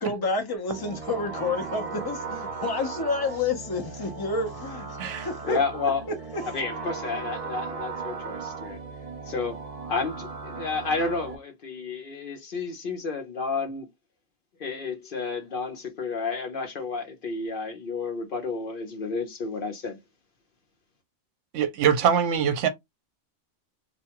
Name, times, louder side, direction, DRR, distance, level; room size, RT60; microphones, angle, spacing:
voice 1, 0.0-5.9 6.3-6.4, left 3 dB, 30° left, 0.4 m, -29 dB
sound 1, 0.7-11.3, right 4 dB, 50° right, 0.4 m, -37 dB
voice 2, 5.4-6.0 6.5-8.8 9.3-9.6 9.9-13.9 14.6-20.0, left 4 dB, 50° left, 0.8 m, -31 dB
voice 3, 21.5-22.7, right 8 dB, 75° right, 0.9 m, -23 dB
2.5 x 2.2 x 2.8 m
omnidirectional pair, 1.3 m